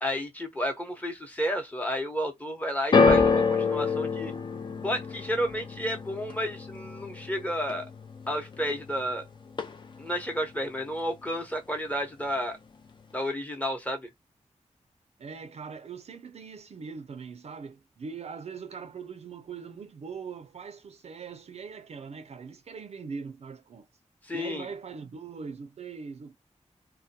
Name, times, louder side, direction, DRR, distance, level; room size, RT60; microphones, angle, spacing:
voice 1, 0.0-4.3 4.8-7.9 8.3-9.2 10.0-12.6 13.1-14.1 24.2-24.7, equal, 10° left, 0.8 m, -31 dB
sound 1, 2.9-9.2 9.5-10.1 10.9-11.0, left 4 dB, 40° left, 0.4 m, -27 dB
voice 2, 15.2-23.9 24.3-26.4, right 5 dB, 60° right, 0.4 m, -41 dB
2.2 x 2.1 x 2.7 m
wide cardioid pair, 105°, 12 cm